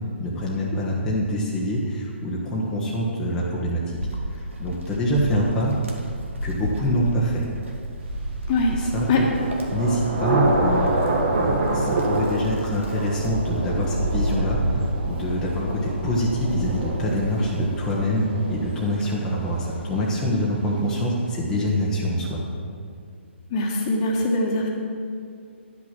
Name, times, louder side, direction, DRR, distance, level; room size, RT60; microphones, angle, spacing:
voice 1, 0.2-4.0 4.3-5.8 6.4-7.4 8.7-9.1 9.7-10.9 11.3-22.4, equal, 10° left, -6 dB, 1.2 m, -25 dB
Wind, 3.9-18.0 18.5-20.0, right 1 dB, 80° right, 1.9 m, -32 dB
Thunder / Rain, 8.6-20.2, right 2 dB, 55° right, 2.5 m, -27 dB
voice 2, 23.5-24.7, left 2 dB, 30° left, 0 dB, 1.5 m, -22 dB
11.0 x 6.1 x 6.0 m, 2.3 s
figure-of-eight pair, 145°, 7 cm